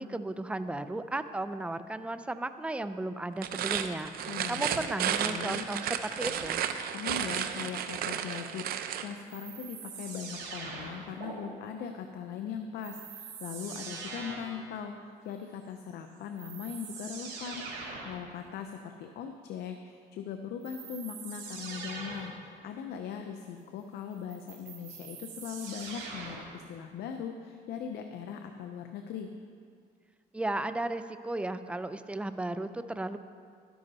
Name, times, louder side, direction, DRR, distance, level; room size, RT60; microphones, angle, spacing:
voice 1, 0.0-6.6 30.3-33.2, right 2 dB, 5° right, 11 dB, 0.4 m, -35 dB
sound 1, 3.3-9.1, right 9 dB, 65° right, 0.7 m, -33 dB
voice 2, 4.3-4.6 5.0-5.7 6.9-14.9 15.2-29.3, left 7 dB, 70° left, 5 dB, 0.7 m, -40 dB
sound 2, 9.3-11.3 12.8-14.6 15.9-16.0 16.4-18.2 20.6-22.4 24.1-26.6, right 4 dB, 85° right, 2.9 m, -43 dB
12.0 x 10.5 x 4.1 m, 2.2 s
cardioid pair, 110°, 17 cm